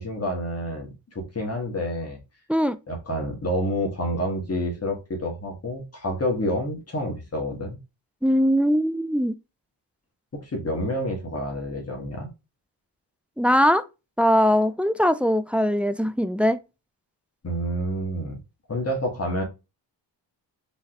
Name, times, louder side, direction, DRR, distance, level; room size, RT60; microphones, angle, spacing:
voice 1, 0.0-2.2 2.9-7.8 10.3-12.3 17.4-18.4 18.7-19.4, equal, 30° left, 1.8 m, -28 dB
voice 2, 8.2-9.3 13.4-13.8 14.2-16.6, equal, 5° right, 0.3 m, -21 dB
4.0 x 3.9 x 3.1 m
cardioid pair, 90°, 45 cm